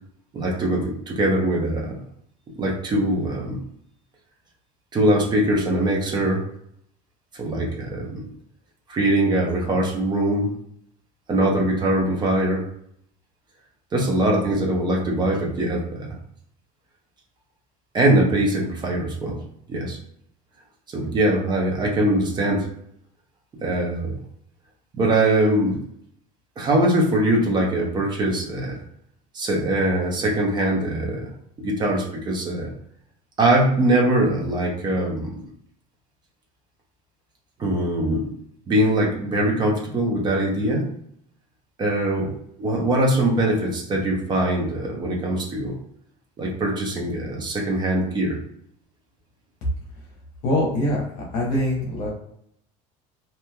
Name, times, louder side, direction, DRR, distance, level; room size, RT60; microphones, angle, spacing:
voice 1, 0.3-1.9 2.6-3.6 4.9-6.4 7.3-8.3 8.9-10.5 11.3-12.7 13.9-16.2 17.9-19.4 19.7-20.0 20.9-22.7 23.6-24.2 24.9-25.8 26.6-28.8 29.3-31.3 31.6-32.7 33.4-35.4 37.6-38.3 38.7-40.9 41.8-42.3 42.6-45.8 46.4-48.4, right 1 dB, 25° right, -1 dB, 0.7 m, -22 dB
voice 2, 50.4-51.0 51.3-52.1, left 1 dB, 50° left, -3 dB, 0.9 m, -23 dB
3.1 x 2.7 x 2.3 m, 0.70 s
cardioid pair, 155°, 17 cm